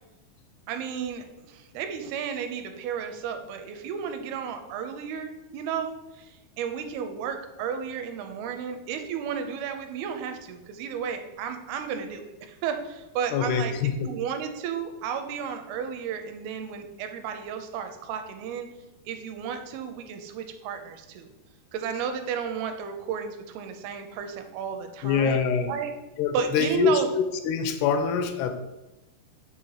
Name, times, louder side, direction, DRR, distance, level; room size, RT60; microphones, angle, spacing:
voice 1, 0.7-13.7 14.0-18.7 19.1-21.3 21.7-25.9 26.3-27.1, right 7 dB, 85° right, 6 dB, 2.4 m, -33 dB
voice 2, 13.3-14.1 25.0-25.7 26.2-27.0 27.5-28.5, left 6 dB, 85° left, 8 dB, 2.7 m, -24 dB
6.4 x 2.8 x 5.6 m, 0.99 s
omnidirectional pair, 4.6 m